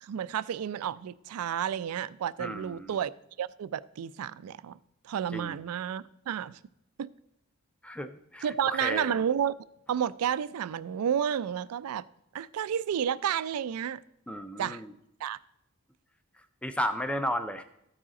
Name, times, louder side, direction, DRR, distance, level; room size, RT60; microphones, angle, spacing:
voice 1, 0.0-3.1 3.4-4.8 5.0-6.6 7.0-7.1 8.4-9.5 9.9-12.0 12.3-14.0 14.6-14.8 15.2-15.4, right 9 dB, 80° right, 16 dB, 0.3 m, -31 dB
voice 2, 2.4-2.9 5.3-5.6 7.8-9.2 14.3-14.9 16.6-17.6, equal, 5° left, 10 dB, 0.4 m, -34 dB
13.0 x 4.9 x 3.7 m, 0.79 s
head